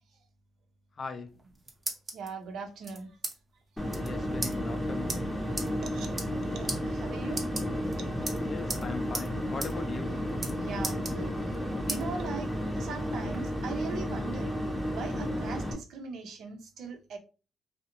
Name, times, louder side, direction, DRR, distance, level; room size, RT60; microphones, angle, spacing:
voice 1, 1.0-1.4 4.0-5.3 8.4-10.2, left 5 dB, 45° left, 0.4 m, -39 dB
sound 1, 1.3-2.3 2.8-3.3 3.6-3.7 3.9-4.1 4.4-4.5 5.1-5.2 5.6-5.7 6.1-6.4 6.7-6.8 7.3-7.9 8.3-8.8 9.1-9.3 9.6-9.7 10.0-10.5 10.8-11.5 11.9-12.0 12.5-13.4, right 2 dB, 30° right, 0.7 m, -36 dB
voice 2, 2.1-3.2 5.8-7.4 8.0-8.3 10.6-14.5 14.9-17.2, right 5 dB, 75° right, 0.5 m, -40 dB
sound 2, 3.8-15.7, equal, 5° left, 0.7 m, -32 dB
2.5 x 2.0 x 2.9 m
cardioid pair, 90°, 0 cm